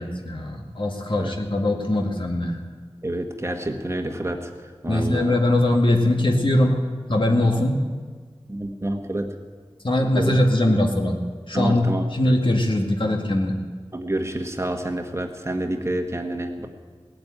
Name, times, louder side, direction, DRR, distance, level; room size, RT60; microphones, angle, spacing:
voice 1, 0.0-2.6 4.9-6.8 7.1-7.8 9.8-11.2 11.5-13.6, left 1 dB, 55° left, 2 dB, 2.0 m, -21 dB
voice 2, 3.0-5.3 7.3-7.5 8.5-9.3 10.2-10.4 11.5-12.3 13.9-16.7, right 1 dB, 25° right, 4 dB, 1.5 m, -28 dB
18.0 x 8.8 x 8.9 m, 1.5 s
wide cardioid pair, 65°, 11 cm